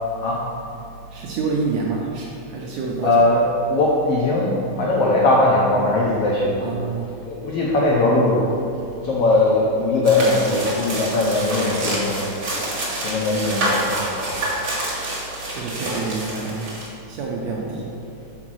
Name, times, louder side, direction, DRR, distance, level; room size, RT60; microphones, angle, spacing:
voice 1, 1.1-3.2 6.6-7.1 15.5-16.7 17.1-17.9, right 4 dB, 75° right, -3 dB, 1.7 m, -27 dB
voice 2, 3.0-6.6 7.3-8.4 9.0-12.2 13.0-14.0 17.7-17.8, left 2 dB, 80° left, -4 dB, 1.3 m, -19 dB
sound 1, 10.0-16.9, right 1 dB, 45° right, 1.1 m, -27 dB
5.8 x 4.8 x 6.1 m, 2.6 s
omnidirectional pair, 3.8 m